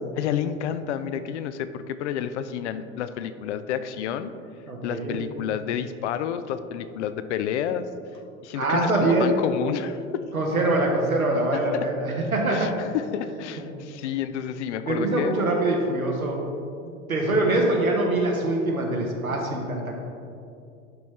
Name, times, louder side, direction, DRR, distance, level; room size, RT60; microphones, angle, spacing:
voice 1, 0.1-4.3 4.8-7.9 8.4-10.3 11.7-11.9 12.5-15.3, left 9 dB, 55° left, 11 dB, 0.5 m, -30 dB
voice 2, 4.7-5.2 8.5-9.3 10.3-12.7 13.6-13.7 14.8-16.4 17.1-20.0, right 2 dB, 85° right, 0 dB, 1.2 m, -24 dB
11.0 x 4.2 x 3.2 m, 2.5 s
figure-of-eight pair, 80°, 41 cm